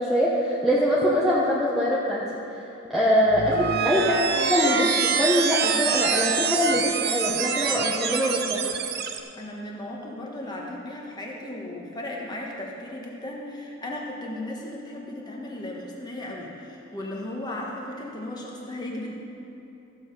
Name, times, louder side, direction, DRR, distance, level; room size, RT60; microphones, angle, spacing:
voice 1, 0.0-2.2 2.5-4.2 4.5-8.7, equal, ahead, -7 dB, 0.9 m, -23 dB
sound 1, 3.3-9.2, right 6 dB, 50° right, 0.6 m, -26 dB
voice 2, 9.4-19.1, left 1 dB, 20° left, -1 dB, 1.3 m, -36 dB
14.5 x 7.1 x 5.4 m, 2.9 s
head